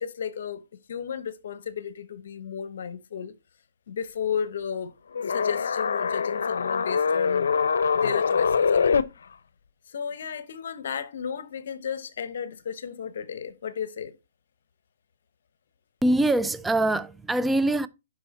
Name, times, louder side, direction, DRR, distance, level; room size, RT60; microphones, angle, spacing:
voice 1, 0.0-3.3 3.9-4.9 5.3-9.0 9.9-14.2, left 7 dB, 65° left, 1.1 m, -33 dB
sound 1, 5.2-9.0, left 6 dB, 80° left, 0.6 m, -24 dB
voice 2, 16.0-17.9, right 1 dB, 5° right, 0.3 m, -23 dB
11.0 x 4.3 x 4.2 m
hypercardioid pair, 160°, 0 cm